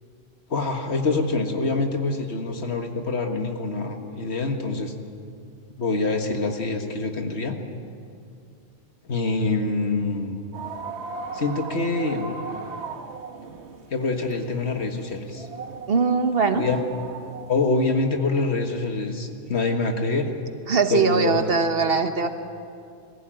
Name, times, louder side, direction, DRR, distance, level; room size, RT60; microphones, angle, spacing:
voice 1, 0.5-4.9 5.8-7.6 9.0-10.4 11.3-12.3 13.9-15.5 16.6-16.8 17.5-20.3 20.9-21.4 21.7-21.9, left 3 dB, 85° left, 4 dB, 1.9 m, -25 dB
sound 1, 10.5-17.7, right 4 dB, 90° right, 1.5 m, -38 dB
voice 2, 15.9-16.7 20.7-22.3, right 5 dB, 65° right, 8 dB, 1.4 m, -21 dB
22.0 x 15.0 x 9.0 m, 2.4 s
omnidirectional pair, 1.1 m